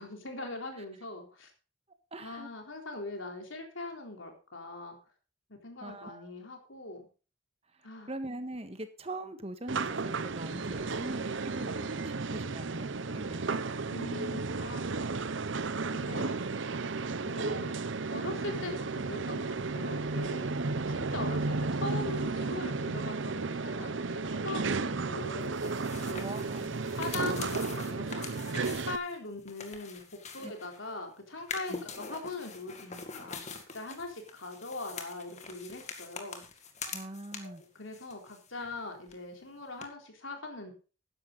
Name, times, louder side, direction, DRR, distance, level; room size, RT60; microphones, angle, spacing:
voice 1, 0.0-1.5 2.2-5.0 5.6-7.1 7.8-8.1 13.9-15.2 15.9-16.4 17.2-17.8 18.1-20.4 20.9-25.6 26.0-26.2 26.9-30.0 30.3-36.4 37.4-40.7, left 2 dB, 75° left, 3 dB, 4.0 m, -41 dB
voice 2, 2.1-2.5 5.8-6.3 8.1-13.6 20.4-21.6 24.8-25.1 26.2-26.8 30.4-30.5 31.7-31.8 36.8-37.6, right 1 dB, 30° right, 9 dB, 1.5 m, -42 dB
sound 1, 9.7-29.0, right 3 dB, 65° right, 0.8 m, -33 dB
sound 2, 25.4-30.9 31.4-37.6 37.9-38.8 39.1-39.2 39.8-39.9, left 5 dB, 35° left, 2.1 m, -44 dB
13.5 x 10.5 x 4.1 m, 0.35 s
head